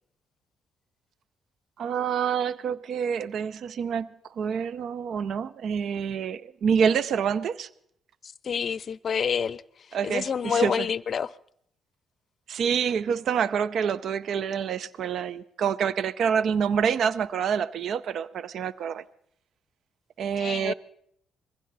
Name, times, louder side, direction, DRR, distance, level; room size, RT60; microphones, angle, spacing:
voice 1, 1.8-4.1 4.4-7.7 9.9-10.9 12.5-19.0 20.2-20.7, right 7 dB, 65° right, 0.6 m, -27 dB
voice 2, 8.4-9.6 10.0-11.3 20.4-20.7, left 7 dB, 50° left, 0.5 m, -27 dB
22.0 x 15.5 x 4.1 m
cardioid pair, 90°, 0 cm